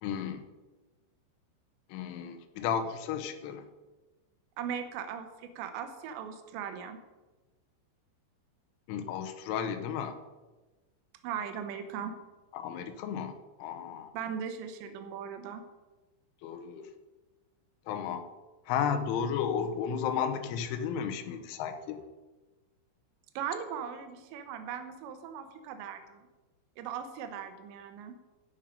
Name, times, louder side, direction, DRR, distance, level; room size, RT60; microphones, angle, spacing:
voice 1, 0.0-0.5 1.9-3.7 8.9-10.2 12.5-14.1 16.4-16.9 17.9-18.2 18.7-22.0, left 7 dB, 85° left, 7 dB, 3.2 m, -33 dB
voice 2, 4.6-7.0 11.2-12.2 14.1-15.6 23.4-26.2 26.8-28.1, right 8 dB, 75° right, 7 dB, 3.1 m, -38 dB
16.0 x 5.4 x 5.2 m, 1.2 s
omnidirectional pair, 5.5 m